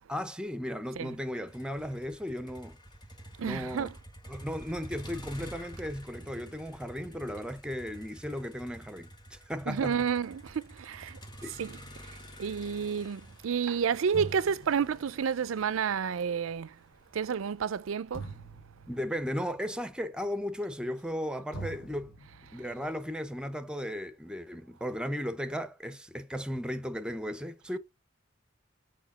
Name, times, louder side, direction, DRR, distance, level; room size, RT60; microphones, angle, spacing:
voice 1, 0.1-2.8 3.4-3.9 4.3-10.0 11.4-11.5 18.9-22.1 22.5-27.8, equal, 5° right, 0.7 m, -36 dB
Motor vehicle (road), 1.5-17.6, equal, 20° left, 1.5 m, -49 dB
voice 2, 3.4-3.9 9.7-11.2 11.6-11.8 12.0-16.7 17.1-18.3, right 7 dB, 75° right, 0.4 m, -30 dB
sound 1, 14.1-21.3 21.5-23.6, right 2 dB, 65° left, 1.2 m, -46 dB
5.0 x 4.5 x 5.4 m
head